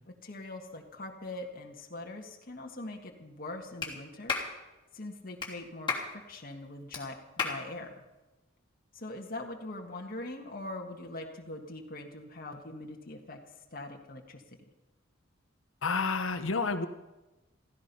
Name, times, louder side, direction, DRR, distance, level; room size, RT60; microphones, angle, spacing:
voice 1, 0.2-4.4 4.9-6.0 6.3-8.0 8.9-14.4, left 2 dB, 50° left, 1 dB, 1.7 m, -42 dB
Clapping, 3.8-3.9 4.3-4.5 5.4-5.5 5.9-6.1 6.9-7.0 7.4-7.6, left 5 dB, 25° left, 3.2 m, -32 dB
voice 2, 15.8-16.9, left 4 dB, 80° left, 8 dB, 1.0 m, -29 dB
16.0 x 15.0 x 5.5 m, 1.1 s
head